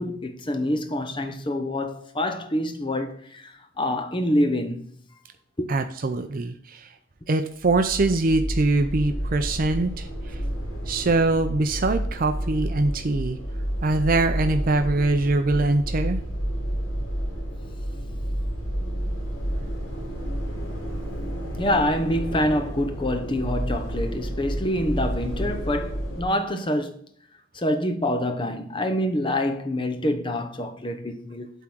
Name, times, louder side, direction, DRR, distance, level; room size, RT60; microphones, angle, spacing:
voice 1, 0.0-4.9 5.6-5.8 21.6-27.0 27.5-31.5, left 1 dB, 25° left, 0.8 m, -26 dB
voice 2, 5.7-6.9 7.3-10.4 10.9-13.4 13.8-16.2, right 2 dB, 45° right, 0.5 m, -23 dB
sound 1, 7.6-26.2, equal, 85° left, 2.6 m, -30 dB
8.3 x 3.7 x 6.0 m
head